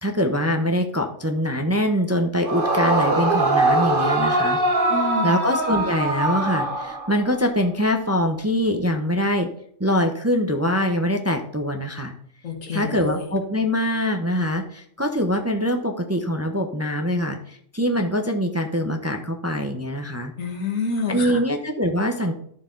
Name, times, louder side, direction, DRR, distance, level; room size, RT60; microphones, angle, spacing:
voice 1, 0.0-4.6 5.2-9.5 9.8-12.1 12.7-20.3 21.1-22.3, equal, 15° right, 4 dB, 0.7 m, -23 dB
Yell / Screaming, 2.4-7.3, right 2 dB, 45° right, 1.3 m, -22 dB
voice 2, 4.9-5.4 12.4-13.3 20.4-21.4, left 4 dB, 90° left, 3 dB, 2.1 m, -28 dB
11.5 x 6.6 x 3.9 m, 0.66 s
omnidirectional pair, 1.3 m